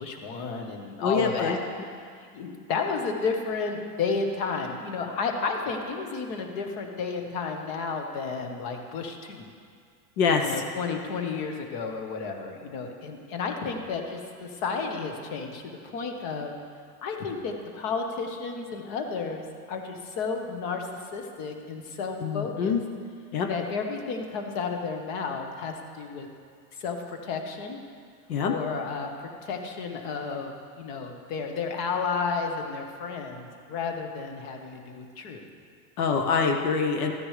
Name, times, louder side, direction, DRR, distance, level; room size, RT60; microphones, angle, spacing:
voice 1, 0.0-1.6 2.3-9.5 10.4-16.5 17.0-22.8 23.5-26.3 26.7-27.8 28.4-35.4, left 5 dB, 45° left, 4 dB, 1.3 m, -32 dB
voice 2, 1.0-1.6 10.2-10.4 22.2-22.8 23.3-23.5 28.3-28.5 36.0-37.1, left 5 dB, 70° left, 4 dB, 1.0 m, -25 dB
13.5 x 9.7 x 3.3 m, 2.2 s
supercardioid pair, 150°, 46 cm